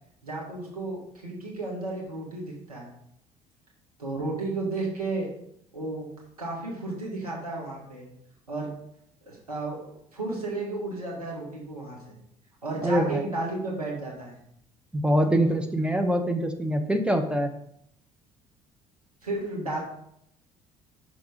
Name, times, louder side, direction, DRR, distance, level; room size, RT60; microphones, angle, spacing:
voice 1, 0.2-2.9 4.0-5.3 5.7-6.1 6.4-8.1 8.5-8.7 9.3-9.8 10.1-12.2 12.6-14.4 19.2-19.8, right 2 dB, 90° right, -3 dB, 1.5 m, -33 dB
voice 2, 12.8-13.3 14.9-17.5, equal, 5° right, 5 dB, 1.0 m, -24 dB
5.9 x 3.7 x 5.0 m, 0.71 s
figure-of-eight pair, 55°, 19 cm